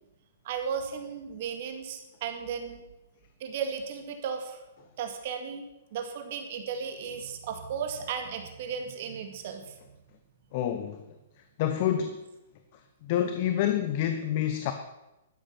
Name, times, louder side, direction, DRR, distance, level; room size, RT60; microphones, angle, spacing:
voice 1, 0.4-2.9 3.4-4.6 5.0-5.6 5.9-9.8, right 6 dB, 55° right, 5 dB, 2.2 m, -35 dB
voice 2, 10.5-11.0 11.6-12.2 13.0-14.7, left 10 dB, 45° left, 8 dB, 1.1 m, -27 dB
12.5 x 11.5 x 5.9 m, 0.97 s
hypercardioid pair, 120°, 0 cm